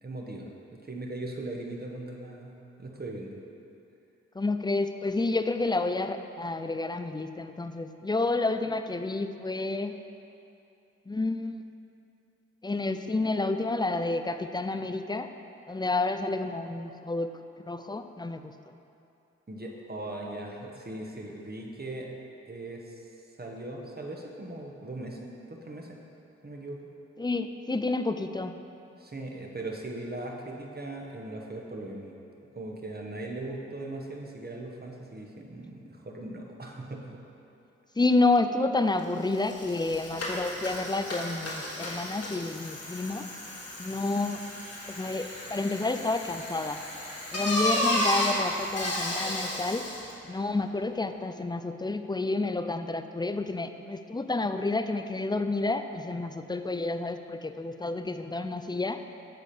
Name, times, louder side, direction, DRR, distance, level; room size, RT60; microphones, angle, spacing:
voice 1, 0.0-3.4 19.5-22.1 22.5-23.0 23.4-26.0 26.4-26.8 29.0-32.1 32.5-37.2, right 2 dB, 30° right, 0 dB, 1.4 m, -39 dB
voice 2, 4.3-9.9 11.1-11.7 12.6-15.3 15.7-17.3 17.6-18.5 27.2-28.6 38.0-43.3 43.8-44.4 44.9-46.8 47.3-49.9 50.2-59.0, left 2 dB, 15° left, 8 dB, 0.5 m, -29 dB
Bicycle, 39.0-39.1 39.3-50.1, left 1 dB, 55° left, 2.0 m, -33 dB
8.1 x 4.2 x 6.8 m, 2.7 s
supercardioid pair, 40°, 29 cm